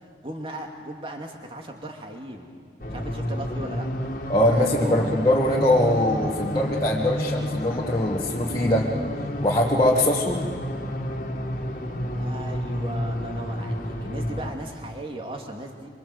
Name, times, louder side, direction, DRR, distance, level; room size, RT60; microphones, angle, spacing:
voice 1, 0.2-2.5 2.9-3.9 4.5-5.2 12.1-15.9, right 1 dB, 30° right, 2 dB, 2.6 m, -37 dB
sound 1, 2.8-14.5, left 1 dB, 45° left, 2.3 m, -30 dB
voice 2, 4.3-8.9 9.4-10.5, left 1 dB, 20° left, -3 dB, 1.9 m, -22 dB
26.5 x 24.5 x 8.0 m, 2.1 s
head